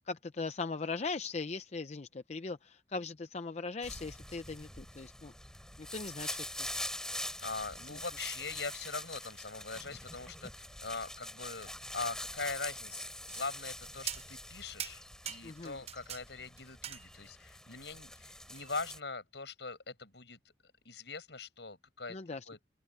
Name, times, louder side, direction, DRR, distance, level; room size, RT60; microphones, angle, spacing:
voice 1, 0.1-5.3 5.8-6.7 7.9-8.0 15.4-15.8 22.1-22.5, left 4 dB, 40° left, 0.6 m, -39 dB
sound 1, 3.8-19.0, left 1 dB, 5° left, 7.5 m, -44 dB
voice 2, 7.4-20.4 20.8-22.2 22.5-22.6, left 4 dB, 75° left, 6.8 m, -42 dB
sound 2, 13.3-13.8 14.1-14.5 14.8-16.2 16.6-17.5 18.6-18.7, right 9 dB, 35° right, 0.8 m, -42 dB
open air
head